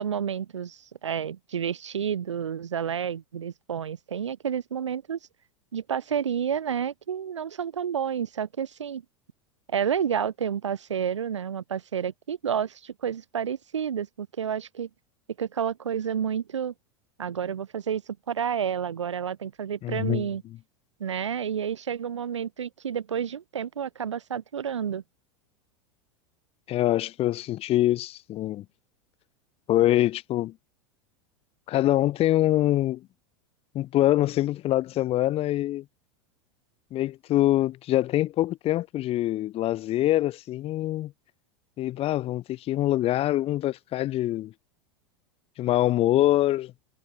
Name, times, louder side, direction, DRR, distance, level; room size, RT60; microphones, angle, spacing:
voice 1, 0.0-5.2 5.7-9.0 9.7-14.9 15.4-16.7 17.2-18.0 18.3-20.4 21.0-25.0, right 8 dB, 90° right, 3.9 m, -30 dB
voice 2, 19.8-20.3 26.7-28.6 29.7-30.5 31.7-33.1 33.7-35.8 36.9-41.1 41.8-44.5 45.6-46.7, left 14 dB, 40° left, 2.7 m, -24 dB
hypercardioid pair, 100°, 15 cm